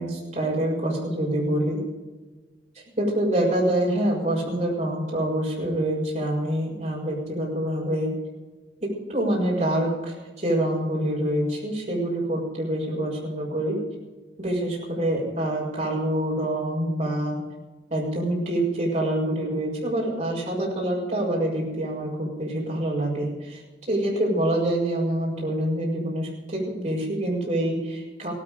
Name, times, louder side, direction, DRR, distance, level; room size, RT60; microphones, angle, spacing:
voice 1, 0.0-1.8 3.0-8.1 8.8-13.8 14.4-17.4 17.9-23.6 23.9-28.3, right 1 dB, 40° right, -3 dB, 6.5 m, -26 dB
17.5 x 13.5 x 5.2 m, 1.2 s
head